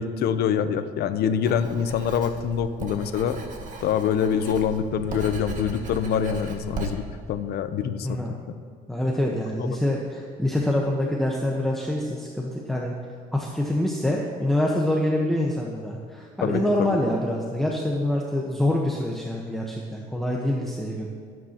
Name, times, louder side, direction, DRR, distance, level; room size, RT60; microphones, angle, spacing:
voice 1, 0.0-3.4 3.8-8.4 16.4-16.9, left 8 dB, 70° left, 10 dB, 0.9 m, -25 dB
Writing, 1.4-6.9, right 4 dB, 50° right, 2.1 m, -37 dB
voice 2, 8.9-12.9 13.3-21.1, left 1 dB, ahead, -2 dB, 1.2 m, -25 dB
24.0 x 9.3 x 3.0 m, 2.2 s
cardioid pair, 110°, 17 cm